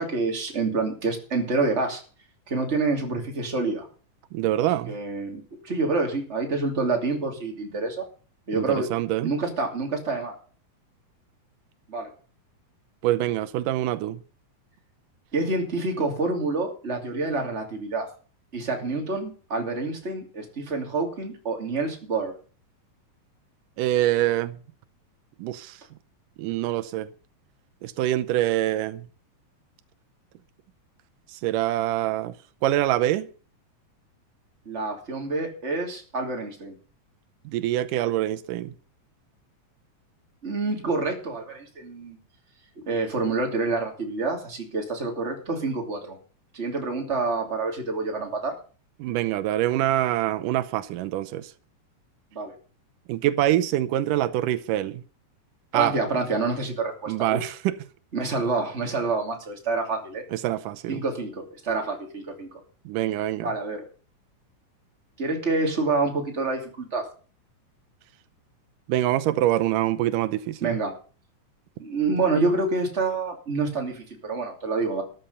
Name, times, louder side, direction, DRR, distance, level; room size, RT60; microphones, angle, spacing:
voice 1, 0.0-2.0 2.5-3.9 4.9-8.0 8.5-8.9 9.2-10.4 11.9-12.1 15.3-18.1 18.5-22.3 34.7-36.8 40.4-42.2 42.9-46.2 46.5-48.6 52.3-52.5 55.7-57.5 58.1-60.2 60.9-62.6 63.4-63.8 65.2-67.1 70.6-70.9 71.8-75.0, right 3 dB, 20° right, 2.8 m, -27 dB
voice 2, 4.3-5.0 8.5-9.3 13.0-14.2 23.8-24.6 25.4-25.8 26.4-27.1 27.8-29.0 31.3-32.3 32.6-33.3 37.5-38.7 49.0-51.5 53.1-55.0 55.7-56.0 57.1-57.7 60.3-61.0 62.9-63.5 68.9-70.8, right 13 dB, 90° right, 2.4 m, -25 dB
13.5 x 10.5 x 5.6 m
omnidirectional pair, 3.7 m